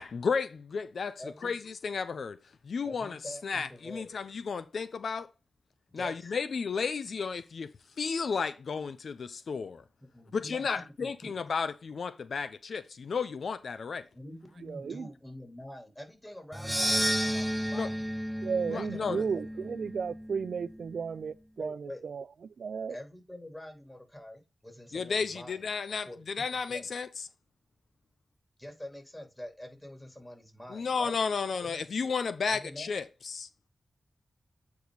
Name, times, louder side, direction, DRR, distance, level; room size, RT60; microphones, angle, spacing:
voice 1, 0.0-2.4 2.6-5.3 5.9-9.8 10.3-14.1 17.7-17.9 18.7-19.2 24.9-27.1 30.7-33.5, left 5 dB, 80° left, 0.5 m, -33 dB
voice 2, 1.2-1.5 2.8-4.2 5.9-6.3 10.0-11.4 14.1-18.1 18.7-19.3 21.6-22.0 22.9-25.7 26.0-26.9 28.6-31.2 31.6-31.8 32.5-32.9, left 1 dB, 20° left, 3.6 m, -46 dB
voice 3, 14.7-15.1 18.4-22.2 22.6-22.9, right 6 dB, 80° right, 0.4 m, -34 dB
sound 1, 16.5-20.9, equal, 10° right, 0.5 m, -32 dB
8.3 x 4.8 x 4.0 m
cardioid pair, 55°, 0 cm